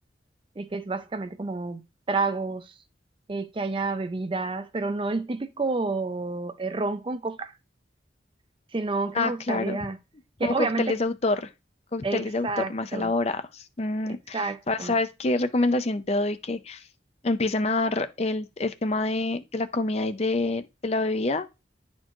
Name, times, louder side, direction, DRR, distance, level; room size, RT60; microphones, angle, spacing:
voice 1, 0.6-1.8 2.1-2.7 3.3-7.5 8.7-10.0 10.4-11.0 12.0-13.1 14.3-15.0, right 3 dB, 30° right, 0.5 m, -29 dB
voice 2, 9.1-9.8 10.4-11.5 11.9-16.8 17.2-21.5, left 2 dB, 35° left, 0.6 m, -27 dB
9.9 x 4.4 x 3.0 m
head